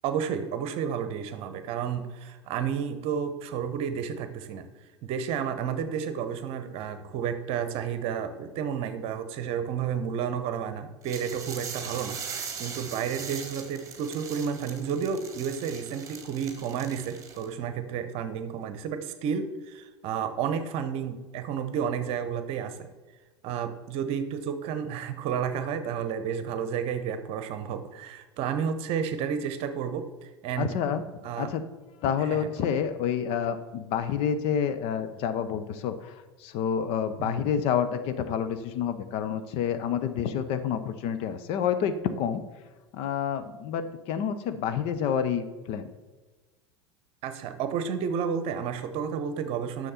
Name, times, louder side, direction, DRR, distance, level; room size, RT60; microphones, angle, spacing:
voice 1, 0.0-4.7 5.0-22.9 23.4-30.7 31.2-31.5 32.2-32.6 37.2-37.4 47.2-49.9, right 7 dB, 40° right, 10 dB, 0.9 m, -31 dB
sound 1, 11.0-17.5, right 6 dB, 20° right, 1.5 m, -40 dB
voice 2, 30.6-31.0 31.4-31.6 32.0-42.4 42.9-45.9, left 8 dB, 45° left, 10 dB, 0.7 m, -28 dB
9.9 x 6.5 x 4.3 m, 1.3 s
figure-of-eight pair, 80°, 14 cm